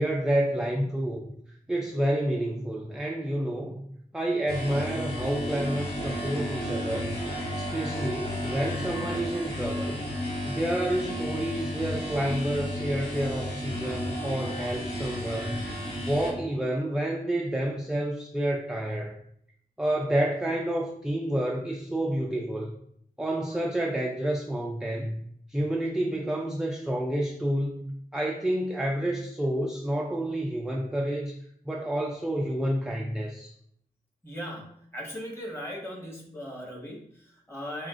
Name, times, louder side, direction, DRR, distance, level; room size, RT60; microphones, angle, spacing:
voice 1, 0.0-1.3 1.7-3.8 4.1-7.2 7.6-10.0 10.4-19.2 19.8-22.7 23.2-25.2 25.5-31.4 31.6-33.5, right 1 dB, 5° right, 0 dB, 0.4 m, -29 dB
sound 1, 4.5-16.3, left 1 dB, 70° left, 1.7 m, -33 dB
voice 2, 34.2-37.9, equal, 15° left, -2 dB, 1.5 m, -38 dB
7.2 x 2.4 x 2.5 m, 0.69 s
wide cardioid pair, 75°, 16 cm